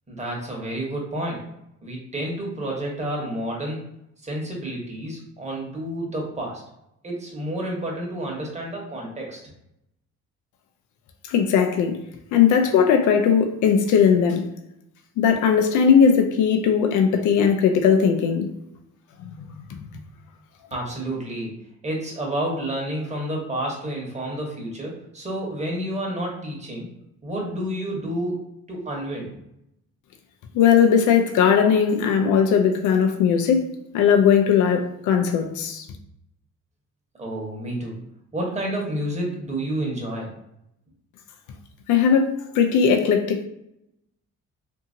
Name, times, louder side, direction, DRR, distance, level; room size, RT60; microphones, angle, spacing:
voice 1, 0.1-1.4 1.8-3.8 4.2-6.6 7.0-9.4 20.7-21.5 21.8-26.9 27.2-28.4 28.7-29.4 37.2-37.9 38.3-40.3, right 1 dB, 20° right, 1.0 m, -30 dB
voice 2, 11.3-12.0 12.3-14.5 15.2-18.5 19.4-19.9 30.5-33.7 33.9-35.8 41.9-43.5, left 7 dB, 80° left, 0.5 m, -18 dB
2.7 x 2.7 x 2.5 m
cardioid pair, 90°, 30 cm